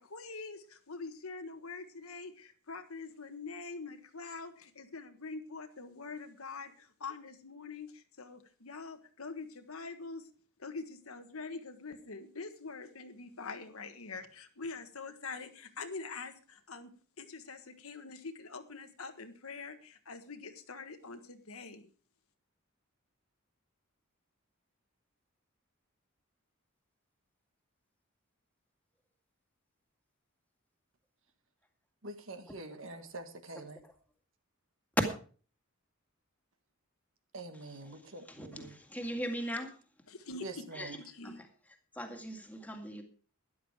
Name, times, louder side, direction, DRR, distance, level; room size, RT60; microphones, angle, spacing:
voice 1, 0.0-10.2 10.6-16.9 17.2-21.8 40.1-40.6 41.0-41.4, left 4 dB, 80° left, 1.5 m, -44 dB
voice 2, 32.0-33.8 37.3-38.8 40.4-41.0, right 2 dB, 65° right, 1.6 m, -45 dB
voice 3, 37.5-38.0 38.3-39.7 40.7-41.0 41.2-41.3 42.0-43.0, equal, 5° left, 2.0 m, -40 dB
13.0 x 11.0 x 4.7 m
head